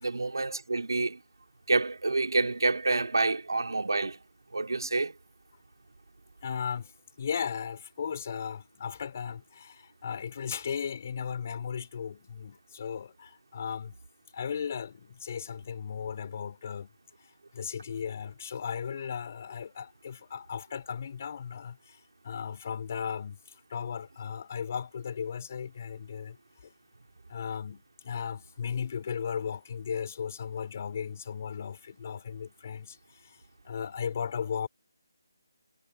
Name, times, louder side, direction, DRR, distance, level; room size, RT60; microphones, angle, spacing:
voice 1, 0.0-1.2 1.7-4.2 4.5-5.1, right 3 dB, 90° right, 3.1 m, -28 dB
voice 2, 6.4-6.9 7.2-14.0 14.3-16.9 17.5-26.4 26.6-26.7 27.3-34.7, left 7 dB, 40° left, 4.3 m, -36 dB
figure-of-eight pair, 170°, 2 cm